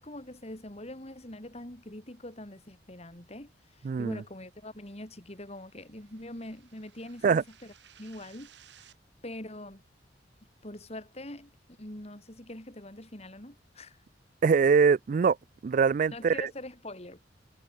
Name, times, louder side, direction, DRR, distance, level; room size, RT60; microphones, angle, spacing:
voice 1, 0.0-7.7 8.0-8.5 9.2-9.8 10.6-11.5 11.8-14.0 16.1-17.3, left 1 dB, 35° left, 3.2 m, -43 dB
voice 2, 3.8-4.2 7.2-7.4 14.4-15.4 15.6-16.5, right 5 dB, 45° right, 0.3 m, -23 dB
sound 1, 4.5-9.0, right 9 dB, 70° right, 2.7 m, -60 dB
head